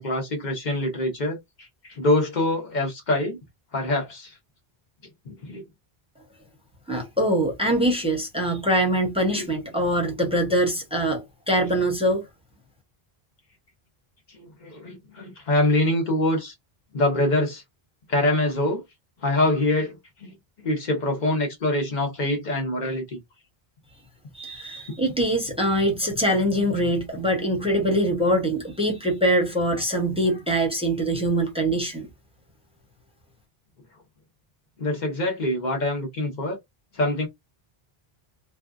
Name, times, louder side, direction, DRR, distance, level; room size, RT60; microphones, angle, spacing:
voice 1, 0.0-3.4 3.7-4.4 5.2-5.6 9.3-9.5 14.3-16.5 16.9-17.6 18.1-18.8 19.2-20.3 20.6-23.2 34.8-36.6 36.9-37.3, left 1 dB, 50° left, 1.0 m, -25 dB
voice 2, 6.9-12.2 24.3-32.1, right 1 dB, 5° right, 0.8 m, -23 dB
2.6 x 2.3 x 2.4 m
omnidirectional pair, 1.0 m